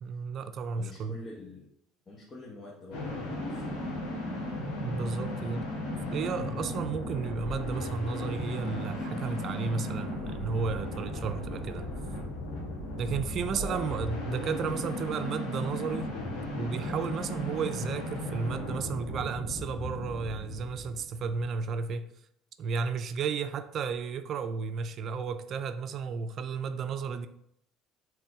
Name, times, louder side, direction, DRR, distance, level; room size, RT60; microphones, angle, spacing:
voice 1, 0.0-1.2 4.8-5.7 6.1-12.0 13.0-16.1 16.5-22.1 22.6-27.3, right 5 dB, 55° right, 0.5 m, -33 dB
voice 2, 0.7-1.7 2.1-4.1 13.5-13.9, left 2 dB, 35° left, 1.3 m, -46 dB
sound 1, 2.9-21.4, left 1 dB, 70° left, 1.8 m, -36 dB
5.9 x 3.7 x 4.8 m
hypercardioid pair, 70°, 0 cm